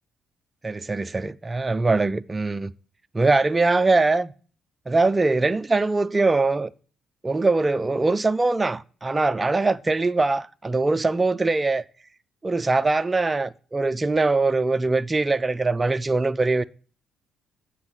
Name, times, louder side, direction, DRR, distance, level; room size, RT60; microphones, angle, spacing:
voice 1, 0.6-2.7 3.1-4.3 4.9-6.7 7.2-11.8 12.4-16.6, right 3 dB, 20° right, 0.4 m, -22 dB
7.9 x 6.2 x 7.4 m
cardioid pair, 105°, 0 cm